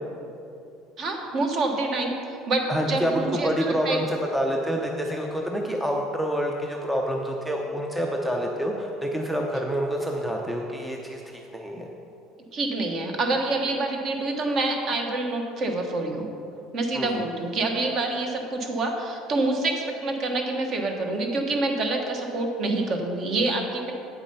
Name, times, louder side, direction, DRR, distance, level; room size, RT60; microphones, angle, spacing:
voice 1, 1.0-2.2 2.5-4.0 12.5-16.3 16.7-23.9, right 2 dB, 40° right, 3 dB, 1.2 m, -27 dB
voice 2, 2.7-11.9 16.9-17.3, equal, 5° right, 0 dB, 0.6 m, -27 dB
8.7 x 7.3 x 5.4 m, 2.6 s
cardioid pair, 160°, 0 cm